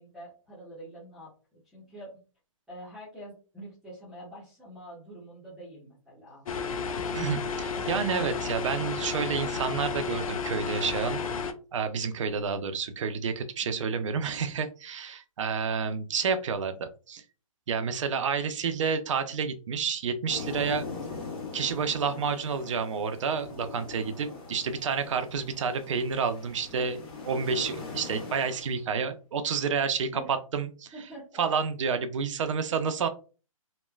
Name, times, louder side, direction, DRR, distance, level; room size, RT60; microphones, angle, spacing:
voice 1, 0.0-2.1 2.7-6.5 13.6-14.0 30.1-30.3 30.9-31.4, right 1 dB, ahead, -9 dB, 0.7 m, -46 dB
sound 1, 6.5-11.5, left 5 dB, 75° left, 0.5 m, -32 dB
voice 2, 7.1-11.2 11.7-17.2 17.7-20.9 21.5-30.9 31.4-33.1, right 6 dB, 60° right, 9 dB, 0.5 m, -29 dB
sound 2, 20.3-28.8, left 4 dB, 45° left, 1.1 m, -41 dB
3.1 x 2.2 x 2.3 m, 0.35 s
hypercardioid pair, 155°, 18 cm